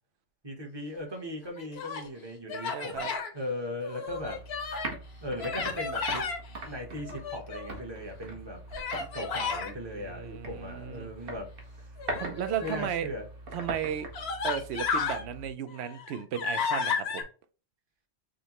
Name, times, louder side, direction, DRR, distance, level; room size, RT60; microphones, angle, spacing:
voice 1, 0.4-3.1 3.3-4.4 5.2-6.2 6.6-8.6 9.1-11.5 12.6-13.3, left 1 dB, 25° right, 0.9 m, -38 dB
Human voice, 1.5-2.1 2.5-3.3 3.8-5.0 5.4-6.4 7.0-7.8 8.7-9.7 12.0-12.9 13.6-13.7 14.1-15.2 15.7-17.2, left 5 dB, 65° left, 1.0 m, -33 dB
voice 2, 2.7-3.1 9.9-11.1 12.2-13.1 13.5-14.1 14.4-17.2, right 8 dB, 70° right, 0.8 m, -35 dB
sound 1, 4.1-15.5, right 2 dB, 55° right, 1.2 m, -42 dB
6.2 x 2.1 x 2.9 m
omnidirectional pair, 1.2 m